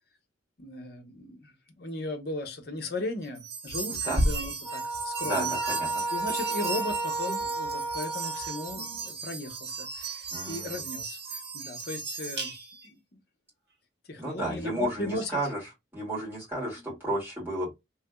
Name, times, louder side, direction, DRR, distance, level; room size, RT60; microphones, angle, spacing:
voice 1, 0.6-5.6 6.1-12.5 12.9-13.2 14.1-15.4 16.8-16.9, left 2 dB, 55° left, 0.9 m, -37 dB
sound 1, 3.4-12.9, right 3 dB, 60° right, 1.5 m, -34 dB
sound 2, 4.6-9.1, right 2 dB, 20° left, 1.3 m, -33 dB
voice 2, 5.2-6.0 10.3-10.8 14.2-15.6 15.9-17.7, right 1 dB, 10° right, 2.2 m, -32 dB
3.3 x 3.1 x 2.3 m
head